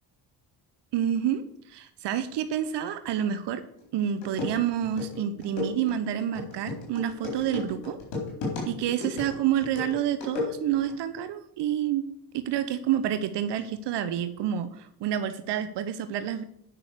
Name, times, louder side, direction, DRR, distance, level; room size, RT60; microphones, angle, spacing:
voice 1, 0.9-1.4 1.7-3.6 3.9-8.0 8.7-12.1 12.3-16.4, right 10 dB, 70° right, 11 dB, 0.9 m, -28 dB
sound 1, 3.8-3.9 4.2-10.9, left 3 dB, 85° left, 4.2 m, -34 dB
9.0 x 5.9 x 6.7 m, 0.73 s
supercardioid pair, 60°, 43 cm